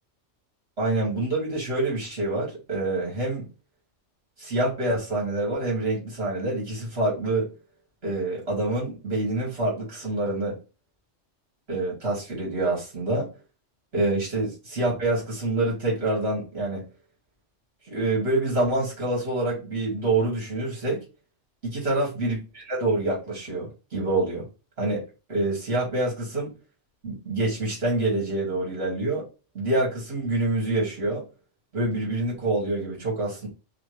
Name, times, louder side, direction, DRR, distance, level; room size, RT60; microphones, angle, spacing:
voice 1, 0.8-3.5 4.4-7.5 8.0-10.6 11.7-13.3 13.9-16.8 17.9-21.0 21.6-24.5 24.8-25.0 25.3-26.5 27.0-29.2 29.5-31.2 31.7-33.5, right 2 dB, 55° right, -4 dB, 2.4 m, -26 dB
5.0 x 2.6 x 3.3 m, 0.31 s
omnidirectional pair, 1.3 m